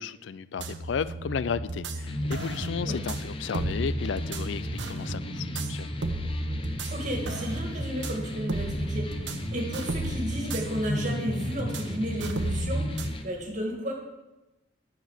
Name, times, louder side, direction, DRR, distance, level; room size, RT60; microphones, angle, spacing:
voice 1, 0.0-5.9, left 6 dB, 80° left, 16 dB, 0.4 m, -33 dB
sound 1, 0.6-13.1, right 1 dB, 75° right, 0.9 m, -33 dB
sound 2, 2.1-13.2, left 1 dB, 30° left, 0.8 m, -36 dB
voice 2, 6.9-13.9, equal, 40° right, 1 dB, 2.0 m, -33 dB
9.1 x 5.9 x 7.3 m, 1.0 s
head